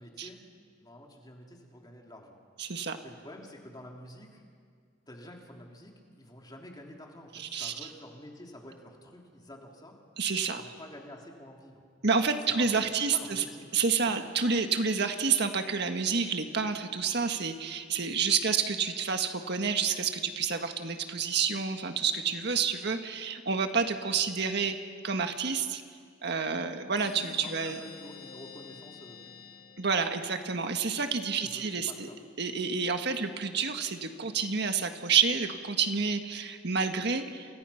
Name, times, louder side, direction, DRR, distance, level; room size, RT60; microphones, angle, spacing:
voice 1, 0.0-2.4 3.0-4.4 5.1-10.0 10.5-11.8 12.7-12.8 13.1-13.7 18.3-18.4 23.9-24.0 27.4-29.5 29.9-30.2 31.2-32.2, left 1 dB, 20° left, 0 dB, 3.4 m, -49 dB
voice 2, 2.6-3.0 7.4-7.7 10.2-10.6 12.0-13.4 13.7-24.8 25.0-25.8 26.2-27.8 29.8-32.1 32.4-37.6, right 5 dB, 60° right, 6 dB, 1.6 m, -29 dB
sound 1, 27.0-30.5, left 5 dB, 55° left, 1.6 m, -48 dB
29.5 x 29.5 x 5.8 m, 2.1 s
head